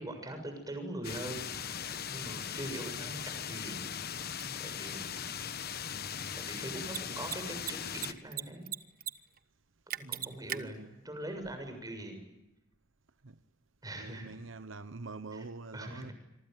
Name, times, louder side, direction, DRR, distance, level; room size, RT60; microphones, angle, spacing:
voice 1, 0.0-1.5 2.1-3.9 4.6-5.6 6.4-8.7 9.9-12.2 13.8-14.3 15.3-15.4 15.7-16.1, right 1 dB, 20° right, 7.1 m, -42 dB
sound 1, 1.0-8.1, left 8 dB, 55° left, 1.3 m, -39 dB
Mechanisms, 4.4-4.5 6.8-7.0 7.2-7.4 7.6-8.4 8.7-9.1 9.4-9.5 9.9-10.6, right 11 dB, 50° right, 1.1 m, -36 dB
voice 2, 10.0-10.9 13.2-13.4 14.0-16.1, right 3 dB, 85° right, 1.0 m, -45 dB
26.5 x 24.0 x 9.3 m
head